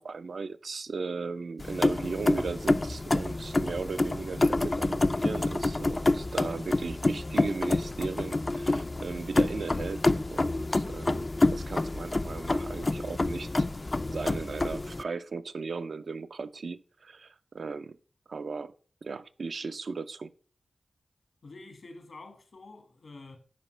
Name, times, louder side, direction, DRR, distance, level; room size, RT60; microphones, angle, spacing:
voice 1, 0.0-13.7 14.1-18.0 18.3-18.7 19.0-20.3, right 4 dB, 75° right, 0.4 m, -37 dB
sound 1, 1.6-15.0, left 2 dB, 35° left, 0.3 m, -28 dB
voice 2, 21.4-23.4, left 3 dB, 70° left, 1.5 m, -48 dB
10.5 x 4.4 x 3.2 m
cardioid pair, 60°, 0 cm